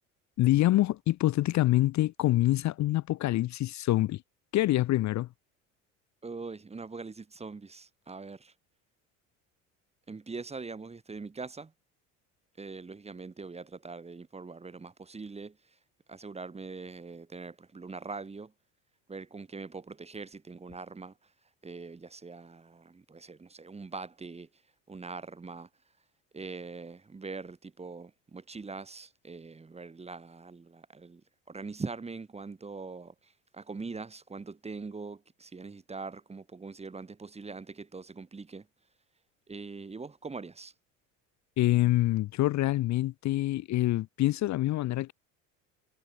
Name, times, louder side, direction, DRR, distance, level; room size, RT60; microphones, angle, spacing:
voice 1, 0.4-4.2 4.5-5.3 41.6-45.1, left 16 dB, 45° left, 0.7 m, -26 dB
voice 2, 6.2-8.5 10.1-11.7 12.6-15.8 16.1-18.5 19.1-21.3 21.6-24.5 24.9-25.7 26.3-38.7 39.5-40.7, right 4 dB, 15° right, 1.2 m, -42 dB
supercardioid pair, 85°, 38 cm